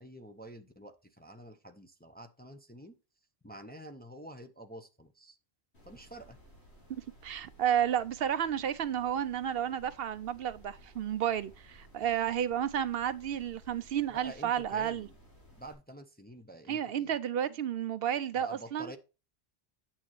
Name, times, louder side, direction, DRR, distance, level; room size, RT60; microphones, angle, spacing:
voice 1, 0.0-3.0 3.4-5.4 5.9-6.4 14.1-15.2 15.5-17.1 18.4-19.0, right 1 dB, 10° left, 0.6 m, -48 dB
sound 1, 5.7-15.7, equal, 85° left, 4.2 m, -57 dB
voice 2, 6.9-15.1 16.7-18.9, right 9 dB, 70° right, 0.8 m, -32 dB
8.9 x 7.3 x 3.1 m
omnidirectional pair, 1.1 m